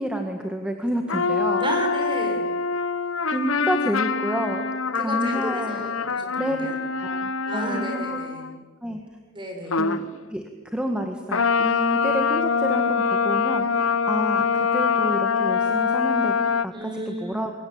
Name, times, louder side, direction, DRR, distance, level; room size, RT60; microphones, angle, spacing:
voice 1, 0.0-1.7 3.3-4.7 5.0-5.8 6.4-6.7 7.0-8.2 8.8-9.0 9.8-10.4 10.7-16.3 16.6-17.5, equal, 5° right, 4 dB, 1.8 m, -29 dB
sound 1, 1.1-8.6 9.7-10.1 11.3-16.6, left 5 dB, 75° left, 1.2 m, -24 dB
voice 2, 1.6-2.5 4.9-6.7 7.5-8.4 9.3-9.8 16.7-17.5, right 1 dB, 25° right, 3 dB, 6.5 m, -33 dB
27.5 x 23.5 x 8.8 m, 1.4 s
head